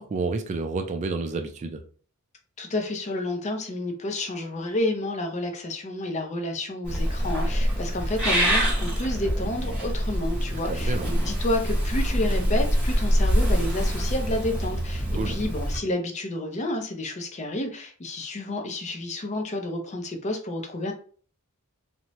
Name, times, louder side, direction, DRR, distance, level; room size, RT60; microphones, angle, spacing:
voice 1, 0.0-1.8 10.7-11.1 15.1-15.4, right 3 dB, 35° right, 6 dB, 0.3 m, -30 dB
voice 2, 2.6-20.9, left 1 dB, 35° left, 4 dB, 0.5 m, -30 dB
Purr / Meow, 6.9-15.8, equal, 5° right, 1.0 m, -25 dB
2.7 x 2.2 x 2.9 m, 0.42 s
head